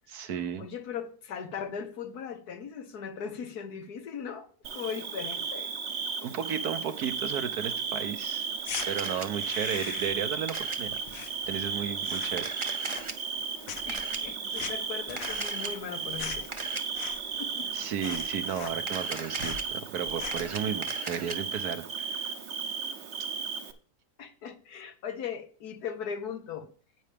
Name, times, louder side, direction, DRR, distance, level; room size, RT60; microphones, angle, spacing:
voice 1, 0.1-0.7 6.2-8.5 8.9-11.0 11.5-12.5 17.7-22.3, right 8 dB, 85° right, 1.4 m, -34 dB
voice 2, 0.6-5.7 12.2-12.3 13.9-16.5 17.4-17.9 24.2-26.7, left 7 dB, 85° left, 1.6 m, -39 dB
Bird / Cricket, 4.6-23.7, right 5 dB, 50° right, 1.0 m, -35 dB
sound 1, 8.6-8.9 9.3-10.3 10.5-11.7 12.0-12.5 12.8-13.4 13.6-17.4 17.7-17.8 18.0-19.1 19.4-19.7 20.1-20.5, left 7 dB, 65° left, 1.2 m, -41 dB
Camera, 8.7-9.3 10.5-10.8 12.3-13.1 13.9-14.2 15.2-15.7 16.5-16.8 18.8-19.6 20.1-21.3, right 3 dB, 30° right, 0.6 m, -37 dB
9.7 x 8.6 x 3.4 m
omnidirectional pair, 1.6 m